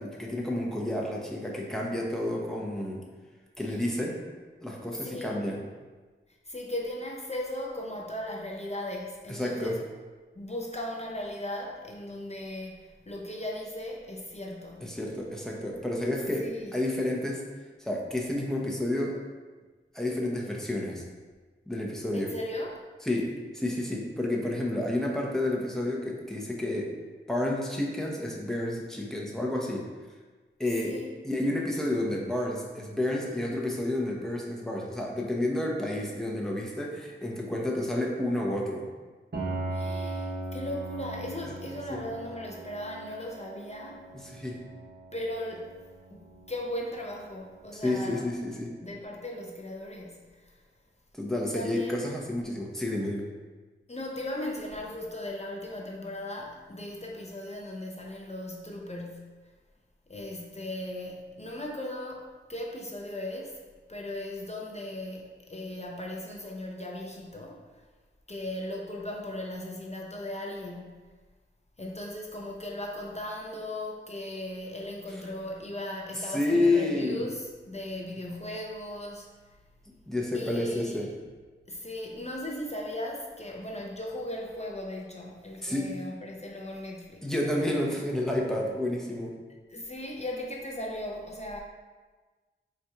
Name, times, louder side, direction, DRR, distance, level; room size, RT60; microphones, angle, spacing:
voice 1, 0.0-3.0 3.6-4.2 4.6-5.6 9.3-9.8 14.8-16.4 16.7-17.4 17.8-19.2 19.9-21.0 21.7-22.3 23.0-26.9 27.3-29.9 30.6-31.0 31.2-38.9 41.9-42.0 44.1-44.6 47.7-48.8 51.1-53.2 75.1-75.2 76.3-77.2 80.1-81.1 85.6-85.9 87.2-89.4, left 1 dB, ahead, -2 dB, 0.9 m, -30 dB
voice 2, 5.0-5.4 6.4-9.8 10.3-15.0 16.4-16.7 22.1-22.8 30.8-31.1 39.7-44.0 45.1-45.7 46.1-48.3 48.8-50.6 51.5-52.1 53.9-59.5 60.1-63.6 63.9-67.6 68.3-70.9 71.8-79.3 80.3-81.1 81.7-87.2 89.7-91.6, left 1 dB, 35° left, -1 dB, 0.6 m, -37 dB
Piano, 39.3-48.9, right 2 dB, 50° right, 1.0 m, -40 dB
4.1 x 2.5 x 4.6 m, 1.3 s
wide cardioid pair, 50°, 20 cm